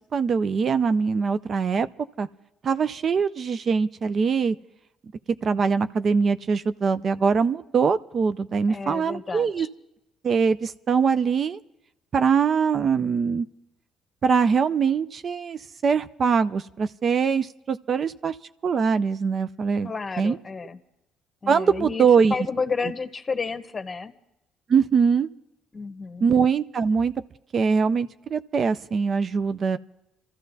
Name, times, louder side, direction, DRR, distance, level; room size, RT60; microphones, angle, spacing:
voice 1, 0.1-1.9 2.2-2.3 2.6-4.6 5.4-9.7 10.2-11.6 12.1-13.5 14.2-18.4 18.6-19.9 20.2-20.4 21.5-22.3 24.7-25.3 26.2-27.1 27.5-29.8, right 5 dB, 50° right, 13 dB, 0.4 m, -22 dB
voice 2, 8.7-9.7 19.8-20.8 21.4-24.1 25.7-26.3, left 4 dB, 30° left, 9 dB, 1.0 m, -31 dB
27.5 x 14.0 x 2.7 m, 0.88 s
supercardioid pair, 70°, 0 cm